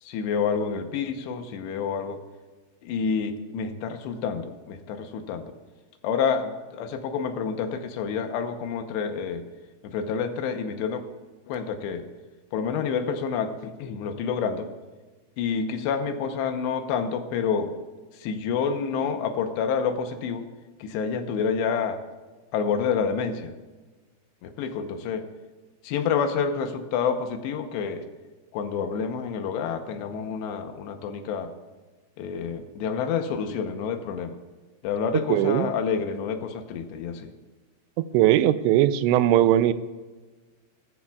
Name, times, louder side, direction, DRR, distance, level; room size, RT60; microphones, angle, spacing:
voice 1, 0.0-2.2 2.8-5.5 6.0-9.4 9.8-11.0 11.5-12.1 12.5-14.7 15.4-17.8 18.1-20.5 20.8-22.0 22.5-23.5 24.4-25.3 25.8-28.0 28.5-31.5 32.2-34.4 34.8-37.3, left 6 dB, 80° left, 7 dB, 3.0 m, -28 dB
voice 2, 35.3-35.7 38.1-39.7, right 13 dB, 90° right, 13 dB, 2.9 m, -19 dB
19.5 x 14.0 x 2.4 m, 1.3 s
omnidirectional pair, 5.0 m